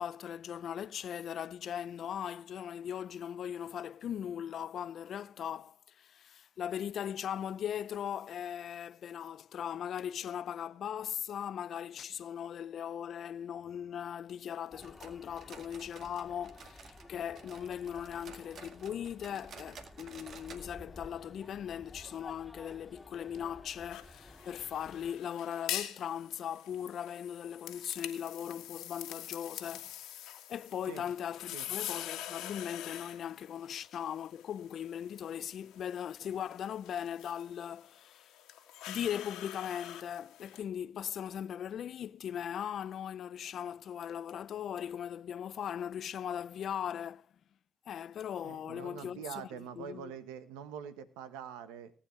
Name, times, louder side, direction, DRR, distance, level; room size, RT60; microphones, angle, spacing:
voice 1, 0.0-29.9 30.5-38.3 38.9-47.3 47.9-49.5 49.8-50.1, left 9 dB, 65° left, 0.5 m, -39 dB
sound 1, 14.7-25.1, left 2 dB, 10° left, 2.3 m, -54 dB
sound 2, 14.8-17.1 17.3-20.7 20.9-21.0 21.4-21.5 22.1-22.2, right 5 dB, 65° right, 1.9 m, -52 dB
sound 3, 23.9-40.6, left 12 dB, 80° left, 1.6 m, -45 dB
voice 2, 48.4-51.9, right 8 dB, 85° right, 1.1 m, -44 dB
19.5 x 9.1 x 3.2 m
hypercardioid pair, 55°, 0 cm